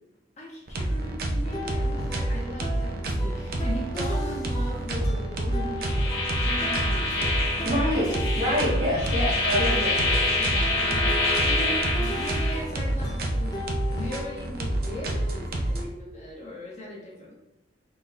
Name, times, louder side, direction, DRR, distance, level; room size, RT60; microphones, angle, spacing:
voice 1, 0.4-7.2 7.6-8.1 10.0-11.1 11.4-17.4, left 1 dB, 40° left, -4 dB, 1.3 m, -39 dB
sound 1, 0.7-15.8, right 1 dB, 55° right, 0.6 m, -28 dB
sound 2, 1.4-14.4, right 1 dB, 20° left, 0.7 m, -36 dB
sound 3, 5.8-12.6, left 2 dB, 60° left, 1.5 m, -27 dB
voice 2, 7.6-8.1 8.3-10.0 10.5-10.7, left 1 dB, 40° right, -8 dB, 1.0 m, -26 dB
4.5 x 3.8 x 2.5 m, 0.93 s
head